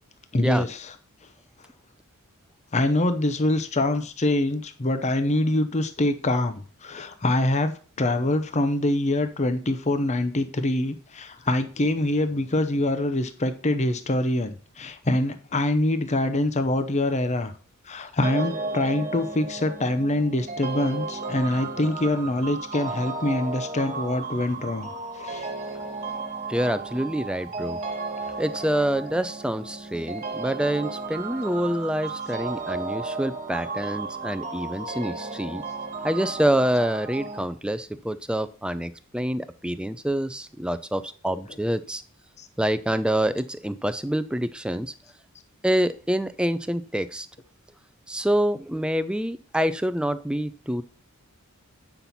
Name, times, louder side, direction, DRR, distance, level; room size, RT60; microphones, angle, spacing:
voice 1, 0.3-0.9 2.7-7.7 8.0-17.5 17.9-24.9 25.1-25.5 41.3-41.4 42.4-42.5, left 1 dB, 30° left, 9 dB, 0.7 m, -25 dB
sound 1, 18.2-37.4, right 3 dB, 35° right, 1.7 m, -34 dB
voice 2, 26.5-27.8 28.4-35.6 36.0-42.0 42.6-44.9 45.6-47.3 48.1-50.8, right 1 dB, 5° right, 12 dB, 0.5 m, -26 dB
8.7 x 5.9 x 4.1 m, 0.40 s
head